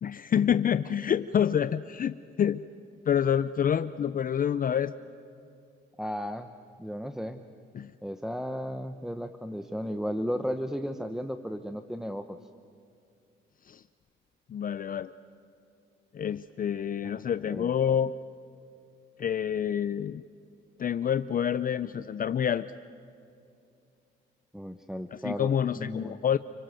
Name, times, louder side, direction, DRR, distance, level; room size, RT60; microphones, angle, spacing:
voice 1, 0.0-2.6 3.1-4.9 7.7-7.9 13.7-13.8 14.5-15.1 16.1-18.1 19.2-20.2 20.8-22.7 25.1-26.4, left 8 dB, 45° left, 13 dB, 0.6 m, -27 dB
voice 2, 6.0-6.5 6.8-7.4 8.0-12.4 17.0-17.7 24.5-25.5 25.8-26.2, equal, ahead, 7 dB, 1.0 m, -34 dB
30.0 x 25.5 x 7.8 m, 2.5 s
cardioid pair, 90°, 20 cm